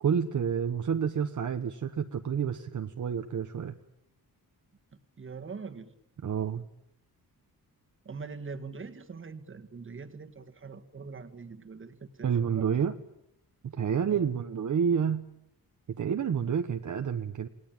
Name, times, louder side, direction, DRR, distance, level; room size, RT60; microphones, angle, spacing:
voice 1, 0.0-3.7 6.2-6.6 12.2-12.9 13.6-15.2 16.0-17.5, right 7 dB, 50° right, 7 dB, 1.2 m, -29 dB
voice 2, 5.2-5.9 8.1-12.7 14.0-14.3, right 4 dB, 35° right, 7 dB, 1.9 m, -43 dB
29.0 x 19.0 x 8.9 m, 0.79 s
wide cardioid pair, 165°, 37 cm